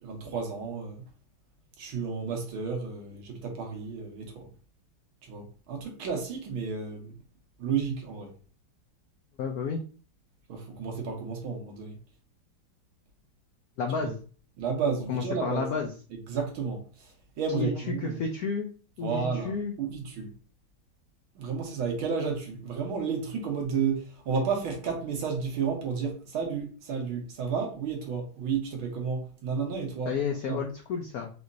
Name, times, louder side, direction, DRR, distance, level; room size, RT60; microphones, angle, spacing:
voice 1, 0.0-1.0 1.8-4.5 5.3-7.1 7.6-8.3 10.5-12.0 14.0-14.1 14.6-15.7 16.3-18.2 19.0-20.3 21.4-30.2 30.5-30.6, right 5 dB, 80° right, 2.0 m, -32 dB
voice 2, 9.4-9.8 13.8-14.2 15.1-15.9 17.5-18.7 19.0-19.7 30.1-31.3, left 5 dB, 75° left, 0.8 m, -31 dB
5.0 x 3.1 x 2.6 m
omnidirectional pair, 2.2 m